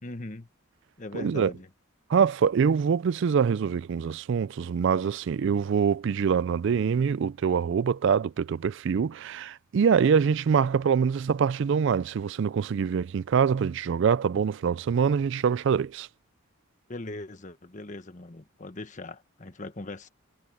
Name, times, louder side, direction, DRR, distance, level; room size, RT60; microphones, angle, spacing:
voice 1, 0.0-0.5 1.0-1.7 16.9-20.1, left 2 dB, 35° left, 1.2 m, -40 dB
voice 2, 1.1-1.5 2.1-16.1, right 6 dB, 60° right, 0.3 m, -24 dB
head